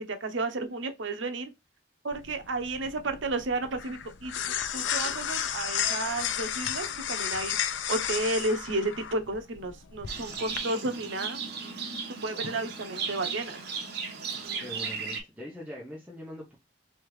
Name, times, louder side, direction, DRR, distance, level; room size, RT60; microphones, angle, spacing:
voice 1, 0.1-1.5 2.0-4.4 4.7-7.6 7.9-11.4 12.2-13.6, right 2 dB, 80° right, 0.7 m, -32 dB
sound 1, 2.1-10.6, left 9 dB, 75° left, 0.5 m, -33 dB
Livestock farm animals working animals, 10.1-15.2, right 5 dB, 60° right, 1.1 m, -36 dB
voice 2, 14.6-16.6, equal, 5° right, 0.9 m, -42 dB
3.5 x 3.4 x 3.1 m
head